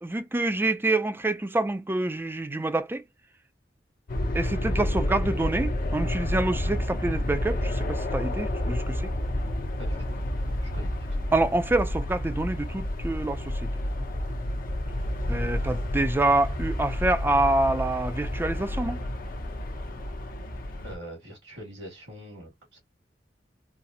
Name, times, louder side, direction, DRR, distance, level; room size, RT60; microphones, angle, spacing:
voice 1, 0.0-3.0 4.3-9.1 11.3-13.7 15.3-19.0, right 2 dB, 10° right, 0.4 m, -26 dB
sound 1, 4.1-21.0, left 1 dB, 55° left, 0.7 m, -30 dB
voice 2, 10.6-11.2 20.8-22.8, equal, 85° right, 2.1 m, -43 dB
4.0 x 2.0 x 2.7 m
head